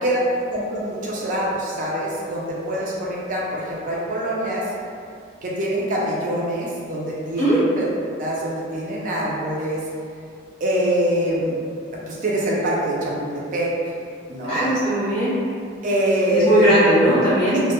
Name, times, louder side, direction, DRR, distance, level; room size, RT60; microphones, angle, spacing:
voice 1, 0.0-4.7 5.4-7.9 8.2-9.9 10.6-11.6 12.1-14.0 14.3-14.7 15.8-16.8 17.5-17.6, equal, 40° right, -4 dB, 0.4 m, -24 dB
voice 2, 14.5-15.4 16.3-17.6, right 1 dB, 25° left, -12 dB, 0.6 m, -18 dB
2.1 x 2.1 x 2.8 m, 2.3 s
head